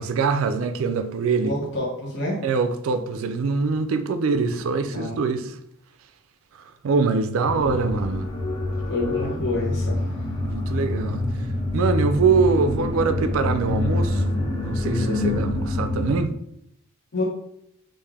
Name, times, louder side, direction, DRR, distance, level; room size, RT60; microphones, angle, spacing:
voice 1, 0.0-1.5 2.4-5.6 6.8-8.3 10.4-11.2 11.7-14.3 14.6-16.3, right 4 dB, 70° right, 0.3 m, -23 dB
voice 2, 1.4-2.4 4.8-5.4 8.9-10.1 17.1-17.2, left 1 dB, 55° left, 0.9 m, -28 dB
sound 1, 7.4-16.2, left 2 dB, 20° left, 0.5 m, -26 dB
3.5 x 2.5 x 3.3 m
head